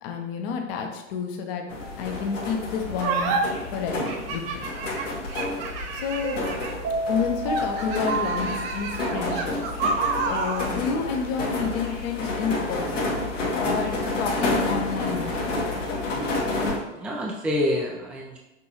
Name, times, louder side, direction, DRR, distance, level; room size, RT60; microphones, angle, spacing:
voice 1, 0.0-1.6 2.0-3.4 3.7-4.4 5.9-6.4 7.1-9.6 10.2-13.2 13.5-15.4, left 6 dB, 55° left, 3 dB, 0.9 m, -29 dB
sound 1, 1.7-16.8, left 2 dB, 80° left, 1.3 m, -30 dB
sound 2, 1.8-2.1 6.2-9.3, right 1 dB, 35° right, 1.2 m, -31 dB
sound 3, 3.0-3.4 4.0-6.9 7.5-10.7, right 4 dB, 55° right, 0.8 m, -29 dB
voice 2, 17.0-18.4, left 1 dB, 5° right, -1 dB, 0.3 m, -28 dB
6.0 x 2.6 x 2.9 m, 1.0 s
hypercardioid pair, 100°, 36 cm